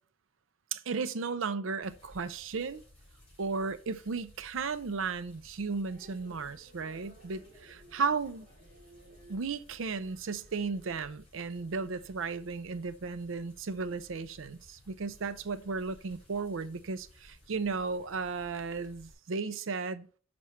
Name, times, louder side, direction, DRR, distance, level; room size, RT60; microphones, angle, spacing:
voice 1, 0.7-2.8 3.4-8.5 9.3-20.1, right 4 dB, 80° right, 0.5 m, -35 dB
sound 1, 1.8-19.1, left 1 dB, 30° left, 3.7 m, -59 dB
sound 2, 5.9-10.9, right 1 dB, 40° right, 2.5 m, -58 dB
6.1 x 4.4 x 5.6 m
head